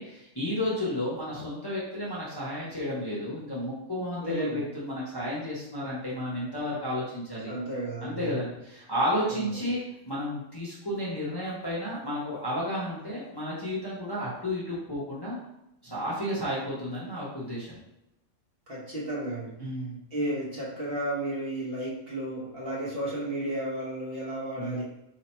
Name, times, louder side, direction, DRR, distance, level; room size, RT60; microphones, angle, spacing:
voice 1, 0.0-7.5 8.0-15.4 15.8-17.8 19.6-20.0 24.6-24.8, equal, 20° left, -8 dB, 0.8 m, -32 dB
voice 2, 4.2-4.6 7.5-8.4 9.3-9.6 18.7-19.6 20.1-24.8, right 1 dB, 45° right, -7 dB, 1.3 m, -33 dB
3.0 x 2.8 x 4.3 m, 0.89 s
omnidirectional pair, 1.4 m